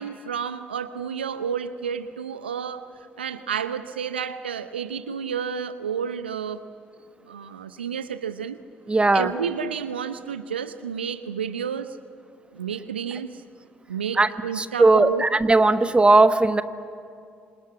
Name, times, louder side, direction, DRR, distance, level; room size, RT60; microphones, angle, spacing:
voice 1, 0.0-2.9 3.2-6.7 7.2-8.6 9.1-12.0 12.5-13.4 13.9-15.2, right 7 dB, 85° right, 12 dB, 0.7 m, -30 dB
voice 2, 8.9-9.3 14.2-14.3 14.6-16.6, right 2 dB, 20° right, 11 dB, 1.3 m, -18 dB
27.0 x 26.0 x 8.6 m, 2.4 s
figure-of-eight pair, 45°, 6 cm